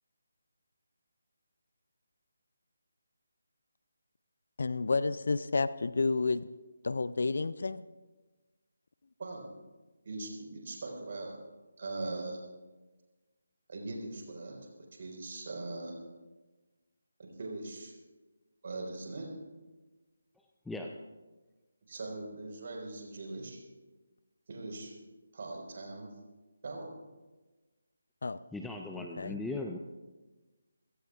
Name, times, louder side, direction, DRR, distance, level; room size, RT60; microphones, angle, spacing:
voice 1, 4.6-6.5 6.8-7.8 28.2-28.4 29.0-29.4, left 3 dB, 50° left, 16 dB, 0.5 m, -30 dB
voice 2, 10.0-11.4 11.8-12.4 13.7-14.6 15.0-15.9 17.2-17.9 18.6-19.3 21.9-23.6 24.5-24.9 25.3-26.1 26.6-26.9, right 2 dB, 40° right, 0 dB, 4.8 m, -40 dB
voice 3, 20.7-21.0 28.5-29.8, left 2 dB, 5° left, 2 dB, 0.6 m, -38 dB
29.0 x 16.5 x 2.5 m, 1.2 s
figure-of-eight pair, 150°, 0 cm